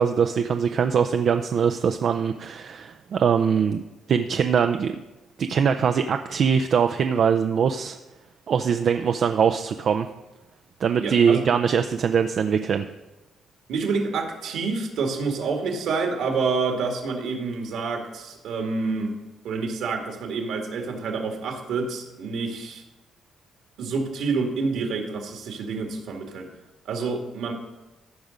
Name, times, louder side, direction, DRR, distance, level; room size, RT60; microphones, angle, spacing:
voice 1, 0.0-3.8 4.1-4.9 5.4-8.0 8.5-10.1 10.8-12.9, right 7 dB, 60° right, 7 dB, 0.4 m, -22 dB
voice 2, 11.0-11.4 13.7-19.1 19.4-22.8 23.8-26.5 26.9-27.5, right 4 dB, 80° right, 3 dB, 1.9 m, -28 dB
14.5 x 5.3 x 5.1 m, 1.0 s
cardioid pair, 90°, 0 cm